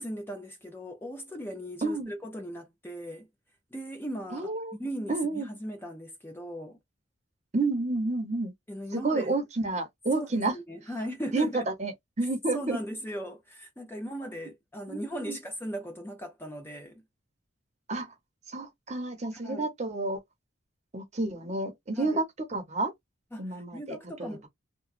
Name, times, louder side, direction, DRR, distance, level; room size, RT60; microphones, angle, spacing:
voice 1, 0.0-3.3 3.7-6.8 8.7-9.3 10.1-11.6 12.5-17.0 19.3-19.7 21.9-22.2 23.3-24.4, equal, 10° left, 0.5 m, -38 dB
voice 2, 1.8-2.1 4.3-4.8 5.1-5.5 7.5-8.5 8.9-10.5 11.3-12.8 14.9-15.4 17.9-18.1 18.5-20.2 20.9-22.2 22.5-22.9 23.4-24.5, right 2 dB, 35° right, 0.8 m, -30 dB
3.0 x 2.2 x 2.5 m
head